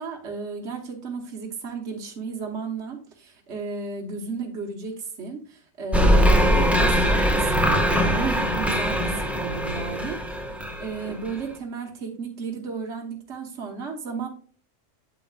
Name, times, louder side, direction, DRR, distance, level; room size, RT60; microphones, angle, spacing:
voice 1, 0.0-10.2 10.5-14.3, right 4 dB, 60° right, 1 dB, 1.5 m, -33 dB
sound 1, 5.9-11.4, equal, ahead, 0.9 m, -21 dB
9.1 x 7.7 x 2.4 m, 0.42 s
omnidirectional pair, 1.3 m